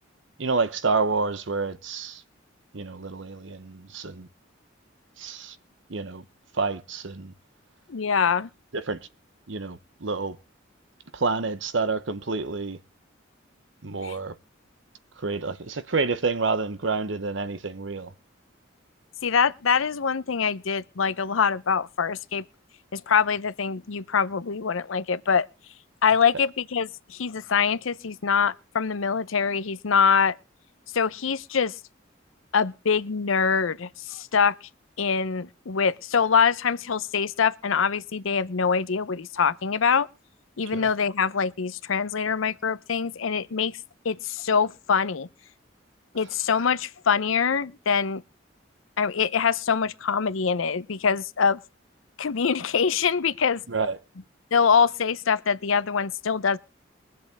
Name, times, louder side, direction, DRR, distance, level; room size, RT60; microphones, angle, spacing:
voice 1, 0.4-2.2 2.7-4.3 5.2-5.6 5.9-6.2 6.5-7.3 8.7-9.1 9.5-10.4 11.1-12.8 13.8-14.3 15.2-18.1 40.7-40.9 53.7-54.0, right 4 dB, 70° right, 0.9 m, -28 dB
voice 2, 7.9-8.5 14.0-14.2 19.2-22.4 22.9-25.5 26.0-30.3 30.9-31.7 32.5-34.5 35.0-40.1 40.6-43.8 44.0-45.3 46.1-48.2 49.0-51.6 52.2-53.6 54.5-56.6, left 6 dB, 90° left, 0.6 m, -24 dB
23.0 x 7.6 x 3.5 m
head